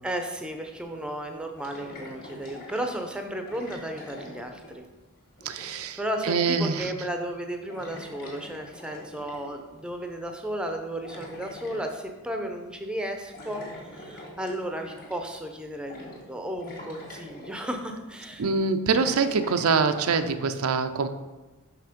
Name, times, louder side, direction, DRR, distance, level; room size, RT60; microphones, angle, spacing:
voice 1, 0.0-4.9 5.5-13.6 13.9-18.5, right 1 dB, 5° right, 4 dB, 0.6 m, -34 dB
sound 1, 1.6-2.9 3.5-5.0 5.3-5.9 6.5-6.9 7.2-7.4 7.7-9.6 10.7-11.9 13.3-15.3 15.8-16.3 16.6-17.7 18.4-20.3, left 1 dB, 40° left, 1.9 m, -44 dB
voice 2, 5.4-6.9 18.4-21.1, right 4 dB, 75° right, 9 dB, 0.5 m, -25 dB
5.9 x 5.7 x 5.1 m, 1.2 s
head